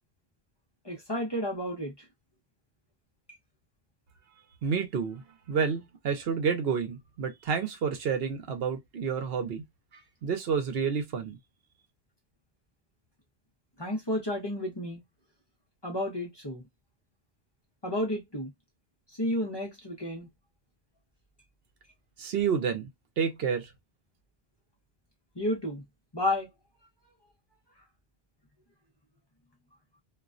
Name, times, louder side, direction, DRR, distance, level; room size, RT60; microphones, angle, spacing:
voice 1, 0.8-1.9 13.8-15.0 15.8-16.6 17.8-18.5 19.2-20.3 25.4-25.8 26.1-26.5, left 1 dB, 30° left, 0.7 m, -31 dB
voice 2, 4.6-9.6 10.2-11.4 22.2-22.9 23.2-23.7, right 6 dB, 70° right, 0.9 m, -29 dB
2.4 x 2.1 x 2.4 m
omnidirectional pair, 1.0 m